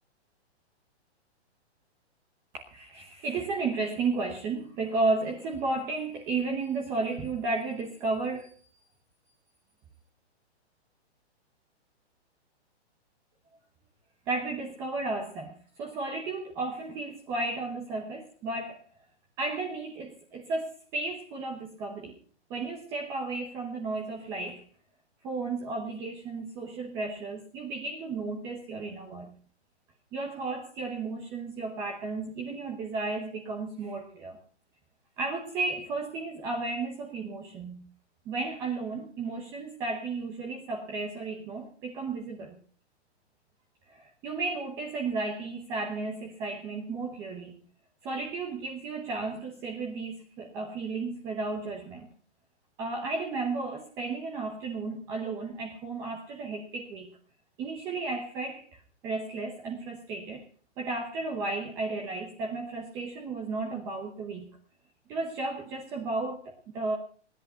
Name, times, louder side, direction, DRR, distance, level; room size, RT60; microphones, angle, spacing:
voice 1, 2.5-8.5 14.3-18.8 19.4-22.1 22.5-24.6 25.2-29.3 30.1-34.4 35.2-37.9 38.3-42.6 43.9-47.6 48.0-52.1 52.8-57.1 57.6-60.4 60.8-64.5 65.1-67.0, right 3 dB, 10° right, 1 dB, 0.9 m, -33 dB
18.5 x 10.5 x 5.6 m, 0.44 s
hypercardioid pair, 180°, 34 cm